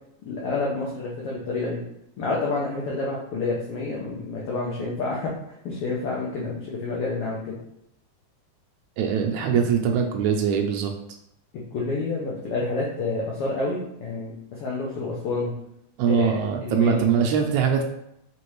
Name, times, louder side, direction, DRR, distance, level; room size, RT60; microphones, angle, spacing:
voice 1, 0.2-1.8 2.2-5.3 5.6-7.5 11.7-15.5 16.1-17.1, left 3 dB, 80° left, -4 dB, 1.3 m, -29 dB
voice 2, 9.0-10.9 16.0-17.8, right 7 dB, 80° right, 3 dB, 1.8 m, -22 dB
5.1 x 3.1 x 3.1 m, 0.77 s
omnidirectional pair, 3.5 m